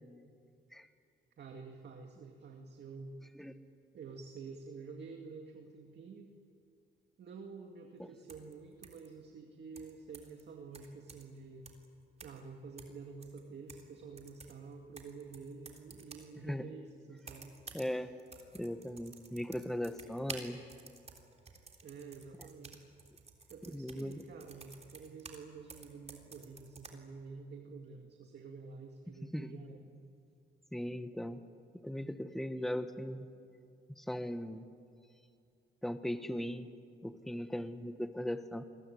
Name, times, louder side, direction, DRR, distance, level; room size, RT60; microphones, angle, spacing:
voice 1, 1.4-3.2 3.9-6.4 7.2-11.7 12.2-17.6 21.8-22.8 23.5-29.9, right 4 dB, 60° right, 3 dB, 2.2 m, -49 dB
sound 1, 8.3-8.5 8.8-9.1 9.8-10.4 10.7-11.4 11.7-11.9 12.2-12.5 12.8-13.9 14.2-16.3 17.2-17.9 18.2-25.4 25.7-26.9, right 4 dB, 35° right, 3.6 m, -52 dB
voice 2, 17.7-18.1 18.5-20.6 23.7-24.2 29.3-29.5 30.7-31.4 31.8-33.3 34.0-34.6 35.8-36.7 37.0-38.6, equal, ahead, 9 dB, 1.3 m, -38 dB
27.0 x 21.5 x 9.4 m, 2.5 s
cardioid pair, 90°, 20 cm